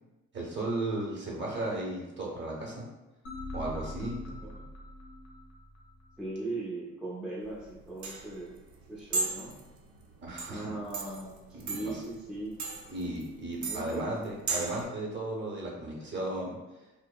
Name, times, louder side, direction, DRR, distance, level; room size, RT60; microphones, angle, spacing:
voice 1, 0.3-2.8 3.5-4.2 10.2-10.7 11.5-12.0 12.9-16.5, right 2 dB, 40° right, -3 dB, 0.8 m, -35 dB
sound 1, 3.3-6.3, left 1 dB, 75° left, 0.6 m, -42 dB
voice 2, 6.2-8.6 8.9-9.6 10.5-12.5 13.6-14.3, right 2 dB, ahead, -6 dB, 0.4 m, -39 dB
sound 2, 7.4-14.8, right 3 dB, 70° right, 0.5 m, -37 dB
2.7 x 2.0 x 2.3 m, 1.0 s
cardioid pair, 90°, 30 cm